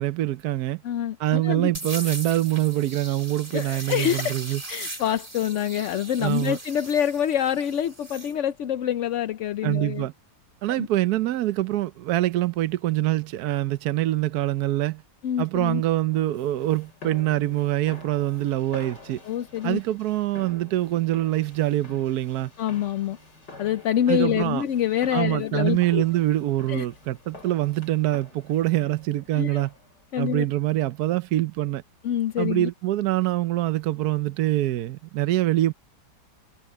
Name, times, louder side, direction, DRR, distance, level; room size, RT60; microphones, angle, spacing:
voice 1, 0.0-0.8 1.2-4.6 6.2-6.6 9.6-10.1 10.6-15.0 15.4-19.2 19.6-22.5 24.1-24.6 25.1-29.7 30.2-31.8 32.4-35.7, right 15 dB, 70° right, 1.1 m, -24 dB
voice 2, 0.8-1.7 3.5-4.4 4.7-10.1 10.8-10.9 15.2-15.8 19.3-19.8 22.6-23.2 23.6-26.0 26.7-26.9 29.3-29.6 30.1-30.5 32.0-32.7, left 10 dB, 65° left, 0.8 m, -26 dB
sound 1, 1.7-8.3, right 2 dB, 20° right, 2.6 m, -38 dB
sound 2, 16.1-30.0, left 3 dB, 90° left, 5.5 m, -47 dB
omnidirectional pair, 1.8 m